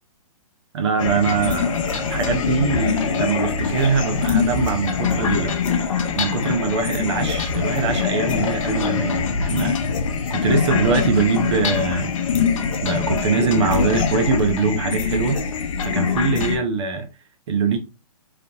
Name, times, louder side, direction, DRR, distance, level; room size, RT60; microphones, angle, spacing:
voice 1, 0.7-5.5 6.1-9.8 10.3-12.1 12.8-15.4 15.8-17.1 17.5-17.8, right 5 dB, 50° right, 0.9 m, -22 dB
sound 1, 1.0-16.6, left 6 dB, 60° left, 0.8 m, -23 dB
3.9 x 3.3 x 2.9 m
hypercardioid pair, 145°, 19 cm